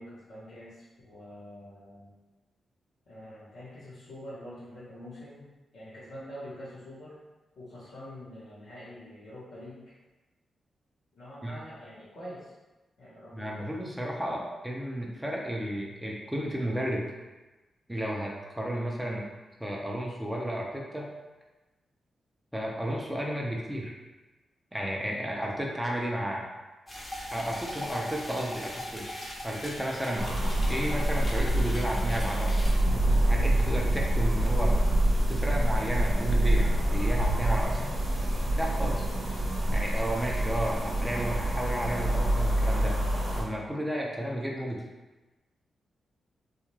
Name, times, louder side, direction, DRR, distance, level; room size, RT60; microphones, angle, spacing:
voice 1, 0.0-2.1 3.1-5.5 5.7-7.1 7.6-9.8 11.2-12.5 13.0-13.8, equal, 85° left, -12 dB, 0.9 m, -45 dB
voice 2, 13.3-17.1 17.9-19.2 19.6-21.1 22.5-24.0 24.7-26.4 27.3-30.3 30.7-32.7 33.2-34.8 35.3-38.0 38.5-39.1 39.7-43.0 43.3-44.8, equal, 10° right, -2 dB, 0.5 m, -33 dB
sound 1, 26.9-32.7, left 1 dB, 25° left, 0.9 m, -40 dB
sound 2, 30.2-43.4, right 1 dB, 60° right, 0.9 m, -26 dB
2.8 x 2.3 x 3.0 m, 1.1 s
cardioid pair, 65°, 0 cm